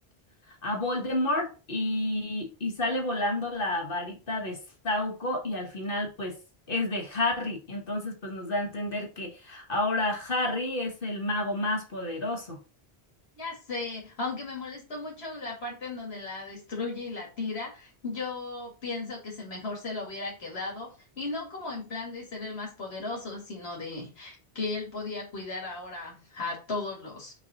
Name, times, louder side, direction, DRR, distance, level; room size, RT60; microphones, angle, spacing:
voice 1, 0.6-6.4 6.7-12.6, left 1 dB, 60° left, 1.7 m, -30 dB
voice 2, 13.4-27.3, left 3 dB, 80° left, 2.2 m, -36 dB
5.8 x 4.0 x 4.0 m
omnidirectional pair, 1.1 m